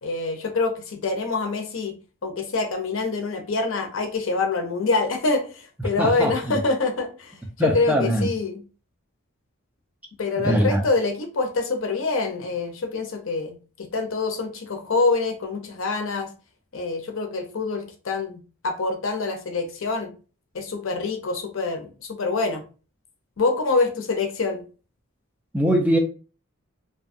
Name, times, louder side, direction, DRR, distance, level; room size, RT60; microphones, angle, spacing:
voice 1, 0.0-1.9 2.2-8.6 10.2-16.3 16.7-20.1 20.5-22.6 23.4-24.6, left 3 dB, 70° left, 5 dB, 0.6 m, -26 dB
voice 2, 5.8-6.6 7.6-8.3 10.4-10.8 25.5-26.0, equal, 5° right, 2 dB, 0.3 m, -22 dB
2.7 x 2.2 x 2.5 m, 0.36 s
head